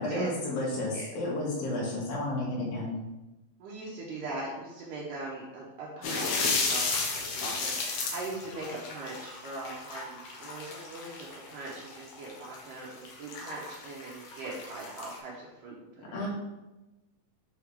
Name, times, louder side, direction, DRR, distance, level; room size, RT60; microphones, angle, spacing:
voice 1, 0.0-2.9 16.1-16.3, left 1 dB, 80° left, -5 dB, 3.7 m, -32 dB
voice 2, 3.6-16.2, right 2 dB, 75° right, -5 dB, 2.5 m, -41 dB
Splash and Trickle, 6.0-15.2, left 4 dB, 65° left, 1.8 m, -34 dB
7.8 x 4.2 x 3.5 m, 1.0 s
omnidirectional pair, 4.1 m